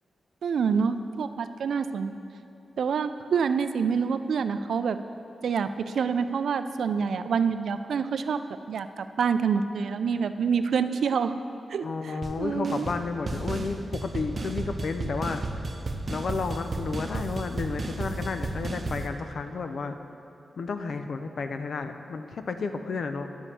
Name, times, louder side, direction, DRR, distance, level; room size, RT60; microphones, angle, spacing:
voice 1, 0.4-2.1 2.8-5.0 5.4-8.4 8.7-11.3 11.7-12.9, right 6 dB, 85° right, 10 dB, 0.3 m, -27 dB
voice 2, 11.8-15.4 16.1-20.0 20.6-23.3, left 4 dB, 65° left, 8 dB, 0.5 m, -32 dB
sound 1, 12.2-12.4 12.6-13.0 13.3-19.1, right 2 dB, 45° right, 0.7 m, -33 dB
10.5 x 7.1 x 4.3 m, 2.7 s
wide cardioid pair, 110°, 0 cm